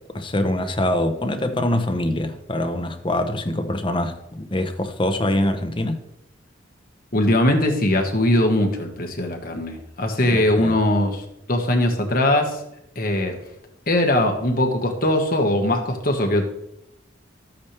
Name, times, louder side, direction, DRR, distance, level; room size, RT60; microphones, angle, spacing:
voice 1, 0.1-6.0 10.2-10.8, left 1 dB, 25° left, 0.8 m, -24 dB
voice 2, 7.1-11.2 11.5-12.6 12.9-13.3 13.9-16.4, left 1 dB, 45° left, 1.5 m, -20 dB
13.5 x 8.8 x 3.4 m
head